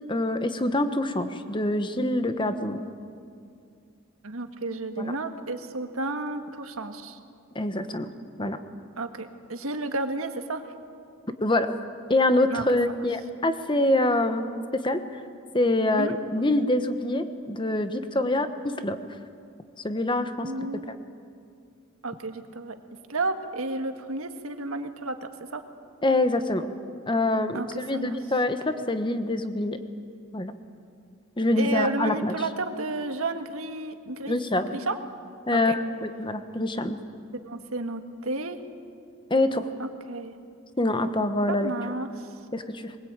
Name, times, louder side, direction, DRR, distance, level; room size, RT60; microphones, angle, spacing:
voice 1, 0.1-2.8 5.0-5.1 7.5-8.1 8.4-8.6 11.4-11.7 12.1-14.4 14.8-15.0 15.5-18.5 18.8-19.0 19.8-20.5 26.0-26.7 27.1-29.8 30.3-30.5 31.4-32.4 34.3-34.7 35.5-37.0 39.3-39.7 40.8-41.7 42.5-42.9, left 1 dB, 20° left, 9 dB, 1.2 m, -25 dB
voice 2, 4.2-7.2 9.0-10.6 12.5-13.0 16.0-16.2 20.4-20.9 22.0-22.8 23.1-25.6 27.5-28.2 31.6-34.4 34.7-35.0 35.5-35.8 37.4-38.6 39.8-40.3 41.5-42.3, right 2 dB, 80° right, 7 dB, 1.7 m, -32 dB
22.5 x 20.5 x 8.9 m, 2.3 s
head